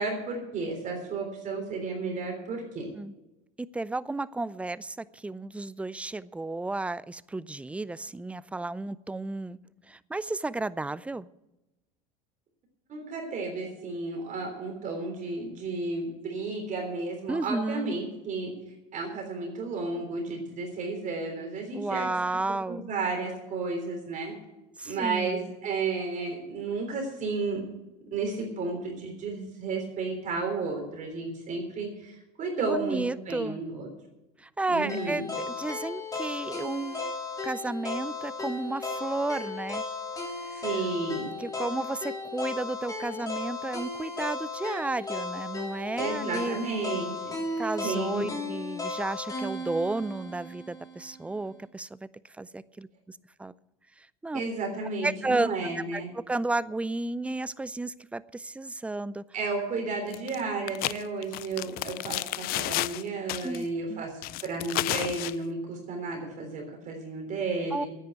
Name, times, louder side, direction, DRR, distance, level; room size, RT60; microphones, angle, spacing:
voice 1, 0.0-2.9 12.9-18.5 18.9-22.1 22.7-24.3 24.8-27.6 28.1-33.9 34.7-35.2 40.6-41.3 46.0-47.3 47.8-48.3 54.3-56.1 59.3-67.9, right 3 dB, 40° right, 2 dB, 3.5 m, -32 dB
voice 2, 3.6-9.6 9.9-11.3 17.3-18.0 21.7-22.9 24.8-25.5 32.6-33.6 34.4-37.1 37.4-39.8 40.5-40.7 41.4-46.6 47.6-52.1 52.4-53.5 54.0-54.4 55.0-55.5 55.9-59.2 63.4-64.1 67.7-67.9, right 2 dB, 5° right, 19 dB, 0.4 m, -32 dB
sound 1, 34.9-51.0, left 3 dB, 20° left, 3.3 m, -35 dB
sound 2, 60.1-60.4 60.7-63.0 63.3-63.6 64.2-65.3, left 18 dB, 50° left, 0.4 m, -31 dB
9.9 x 9.5 x 8.1 m, 0.99 s
supercardioid pair, 110°, 19 cm